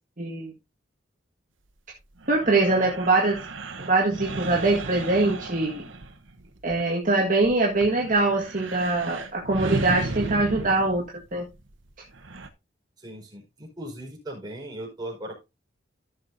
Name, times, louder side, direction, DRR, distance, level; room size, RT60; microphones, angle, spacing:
voice 1, 0.2-0.5 2.3-3.4 3.9-5.8 6.6-11.0 11.3-11.4, right 2 dB, 45° right, -2 dB, 1.7 m, -23 dB
sound 1, 2.2-6.9 7.3-12.5, right 2 dB, 85° right, 1.1 m, -35 dB
voice 2, 13.0-15.5, right 1 dB, 20° right, -2 dB, 4.8 m, -38 dB
15.0 x 6.5 x 2.7 m, 0.24 s
head